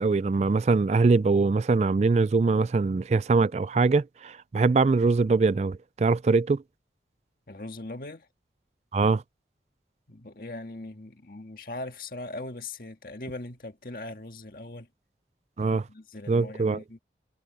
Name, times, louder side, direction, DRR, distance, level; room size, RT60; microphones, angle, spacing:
voice 1, 0.0-6.6 8.9-9.2 15.6-15.8 16.3-16.8, right 3 dB, 40° right, 0.3 m, -23 dB
voice 2, 7.5-8.3 10.1-14.9 15.6-17.0, left 2 dB, 55° left, 1.9 m, -40 dB
head